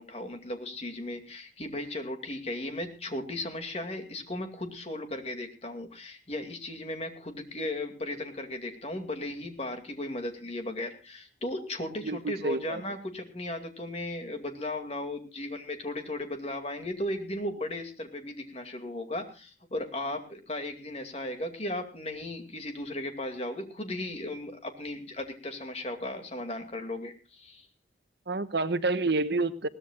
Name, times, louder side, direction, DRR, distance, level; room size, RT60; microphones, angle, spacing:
voice 1, 0.0-27.7, left 1 dB, 35° left, 2.3 m, -36 dB
voice 2, 12.0-12.8 28.3-29.7, right 3 dB, 65° right, 1.0 m, -28 dB
21.5 x 17.5 x 2.4 m
head